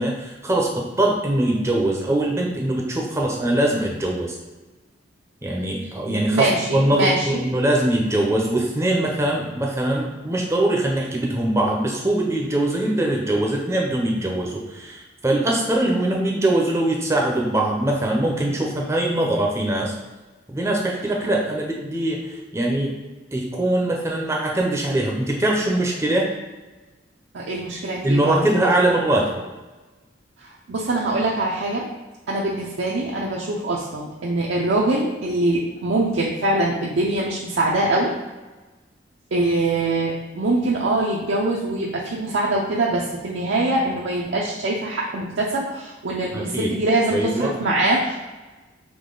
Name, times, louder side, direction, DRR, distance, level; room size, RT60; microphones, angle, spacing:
voice 1, 0.0-4.4 5.4-19.9 20.5-22.9 23.3-26.3 28.0-29.3 46.3-46.7 47.1-47.5, right 1 dB, 15° right, -1 dB, 0.5 m, -22 dB
voice 2, 6.1-7.4 27.3-28.4 30.4-31.8 32.3-38.1 39.3-48.1, right 2 dB, 85° right, -3 dB, 0.5 m, -23 dB
3.7 x 3.0 x 3.8 m, 1.2 s
head